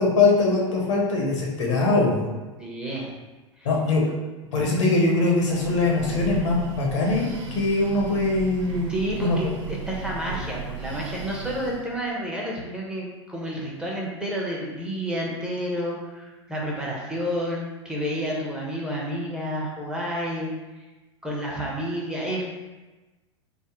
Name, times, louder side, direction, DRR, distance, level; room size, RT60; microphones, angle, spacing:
voice 1, 0.0-2.3 3.6-4.0 4.5-8.9 9.2-9.4, left 3 dB, 70° left, -2 dB, 1.0 m, -22 dB
voice 2, 2.6-3.2 3.6-3.7 8.9-20.5 21.2-22.4, equal, 5° right, -3 dB, 0.8 m, -30 dB
Breathing, 5.3-12.0, right 5 dB, 70° right, 0.7 m, -35 dB
3.6 x 2.0 x 3.7 m, 1.2 s
hypercardioid pair, 95°, 16 cm